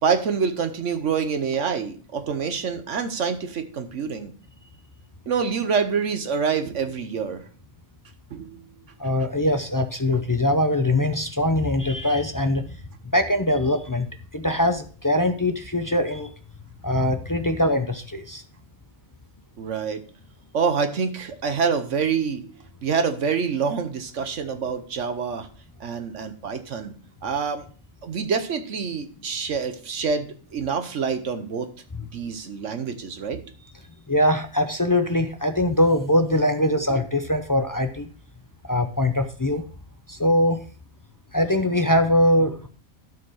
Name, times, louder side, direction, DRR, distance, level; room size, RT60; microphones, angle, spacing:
voice 1, 0.0-4.3 5.3-7.5 8.3-8.8 19.6-20.0 20.5-22.5 22.8-25.5 25.8-26.9 27.2-27.7 28.0-31.7 32.1-33.5 36.9-37.0, right 6 dB, 60° right, 9 dB, 1.2 m, -26 dB
voice 2, 9.0-12.8 13.1-14.1 14.3-16.3 16.8-18.4 34.1-38.1 38.6-39.6 40.1-40.6 41.3-42.7, left 1 dB, 30° left, 6 dB, 0.3 m, -22 dB
12.0 x 4.8 x 6.2 m, 0.42 s
omnidirectional pair, 1.4 m